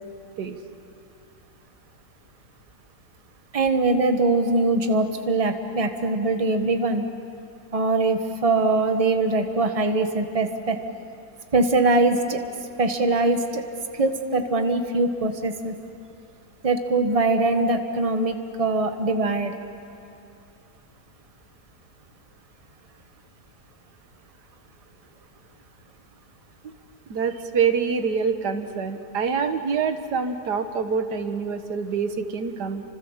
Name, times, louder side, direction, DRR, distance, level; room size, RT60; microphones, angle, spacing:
voice 1, 3.5-7.0 7.7-10.8 11.5-12.4 12.8-13.6 13.9-15.7 16.6-19.6, right 2 dB, 20° right, 6 dB, 1.4 m, -22 dB
voice 2, 27.1-32.8, right 6 dB, 85° right, 8 dB, 1.9 m, -26 dB
30.0 x 26.0 x 7.3 m, 2.7 s
omnidirectional pair, 1.7 m